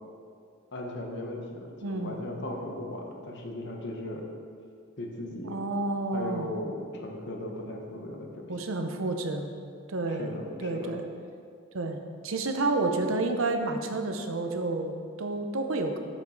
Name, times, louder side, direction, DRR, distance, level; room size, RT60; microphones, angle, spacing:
voice 1, 0.7-4.2 5.0-5.8 6.1-8.7 10.1-10.9, left 1 dB, 60° left, 1 dB, 1.1 m, -37 dB
voice 2, 1.8-2.2 5.4-6.5 8.5-9.5 9.9-10.3 10.6-11.0 11.7-12.0 12.2-16.0, right 2 dB, 70° right, 5 dB, 0.7 m, -30 dB
8.5 x 7.3 x 3.9 m, 2.3 s
head